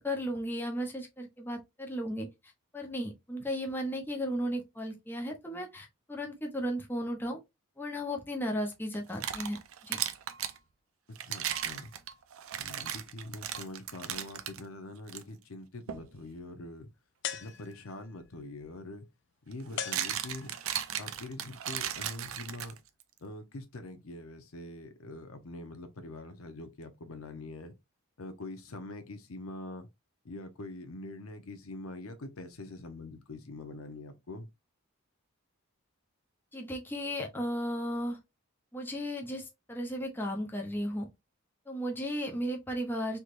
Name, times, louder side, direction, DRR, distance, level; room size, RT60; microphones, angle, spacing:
voice 1, 0.0-7.4 7.8-9.6 9.8-10.0 36.5-38.2 38.7-41.1 41.7-43.2, equal, 10° left, 0.6 m, -35 dB
sound 1, 8.9-10.6 11.2-14.6 15.1-15.2 15.9-16.1 18.2-18.3 19.5-23.0, right 10 dB, 75° right, 0.5 m, -36 dB
voice 2, 11.1-11.9 12.6-16.9 17.3-19.1 19.5-20.6 21.0-22.8 23.2-27.7 28.2-29.9 30.2-34.5, left 2 dB, 80° left, 0.7 m, -44 dB
sound 2, 17.2-18.1 19.8-20.7, left 9 dB, 55° left, 0.3 m, -40 dB
3.4 x 3.0 x 2.4 m
head